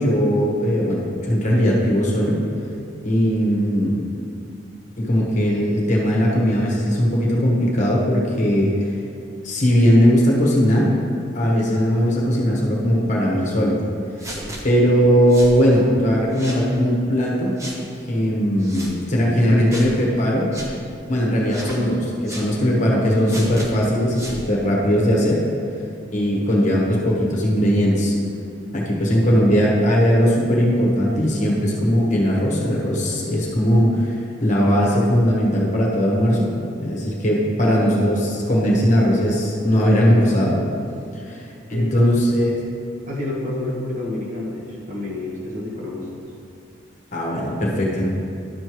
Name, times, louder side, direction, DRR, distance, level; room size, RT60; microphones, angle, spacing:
voice 1, 0.0-2.4 3.0-4.0 5.0-8.9 9.4-10.9 11.3-13.8 14.2-14.3 14.6-17.5 18.1-20.5 21.1-25.4 26.1-28.1 28.7-36.5 36.8-40.6 41.1-42.5 47.1-48.1, equal, 35° left, -3 dB, 1.2 m, -19 dB
sound 1, 14.2-14.6 15.3-15.6 16.3-16.7 17.6-17.8 18.6-18.9 19.7-19.9 20.5-20.7 21.5-21.8 22.3-22.5 23.3-23.7 24.1-24.4, right 1 dB, 15° right, 0.8 m, -34 dB
voice 2, 41.7-42.3 43.1-46.1, left 2 dB, 40° right, -4 dB, 1.4 m, -29 dB
11.5 x 6.5 x 3.1 m, 2.5 s
head